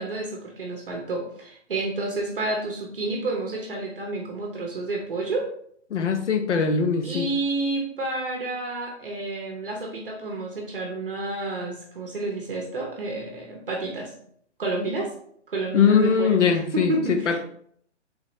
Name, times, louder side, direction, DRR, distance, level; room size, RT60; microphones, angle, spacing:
voice 1, 0.0-5.5 7.0-14.1 14.6-15.1 15.5-16.4 16.7-17.4, right 2 dB, 50° right, 0 dB, 0.8 m, -30 dB
voice 2, 5.9-7.3 15.7-17.4, left 6 dB, 75° left, 8 dB, 0.7 m, -21 dB
3.6 x 2.7 x 3.0 m, 0.64 s
hypercardioid pair, 180°, 36 cm